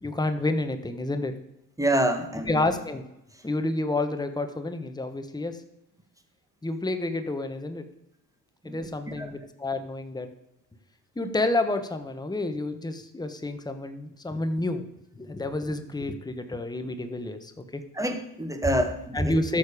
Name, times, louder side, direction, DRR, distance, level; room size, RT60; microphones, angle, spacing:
voice 1, 0.0-1.3 2.5-3.1 3.4-5.6 6.6-7.9 8.6-10.3 11.2-14.8 15.1-17.8 19.1-19.6, left 2 dB, 10° left, 8 dB, 1.2 m, -29 dB
voice 2, 1.8-2.6 8.6-8.9 9.2-9.3 17.9-19.4, right 1 dB, 5° right, 7 dB, 1.8 m, -26 dB
12.0 x 6.8 x 5.0 m, 0.84 s
supercardioid pair, 65°, 47 cm